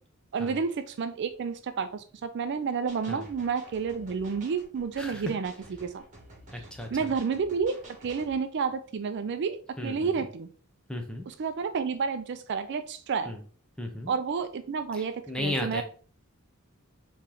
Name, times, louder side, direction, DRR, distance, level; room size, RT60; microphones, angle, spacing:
voice 1, 0.3-5.5 5.8-6.0 6.9-7.8 8.0-10.5 11.3-13.3 14.1-15.8, right 5 dB, 55° right, 10 dB, 0.4 m, -30 dB
sound 1, 2.9-8.4, right 2 dB, 35° right, 1.5 m, -50 dB
voice 2, 5.0-5.3 6.5-7.1 9.8-10.2 10.9-11.3 13.3-13.4 13.8-14.1 14.9-15.8, left 1 dB, 5° left, 3 dB, 0.7 m, -35 dB
4.3 x 3.1 x 3.8 m, 0.42 s
head